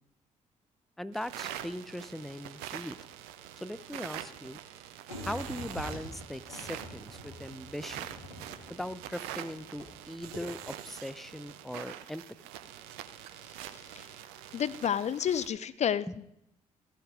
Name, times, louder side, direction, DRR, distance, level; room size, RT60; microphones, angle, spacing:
voice 1, 1.0-3.0 3.6-4.6 5.2-8.1 8.7-12.2 16.1-16.2, left 1 dB, ahead, 16 dB, 0.6 m, -39 dB
sound 1, 1.1-15.5, right 11 dB, 70° right, 0.8 m, -45 dB
sound 2, 5.1-9.9 10.2-10.4, equal, 85° left, 1.8 m, -45 dB
voice 2, 13.7-14.1 14.5-16.3, left 9 dB, 40° left, 17 dB, 0.5 m, -31 dB
15.0 x 7.4 x 5.0 m, 0.79 s
figure-of-eight pair, 45°, 17 cm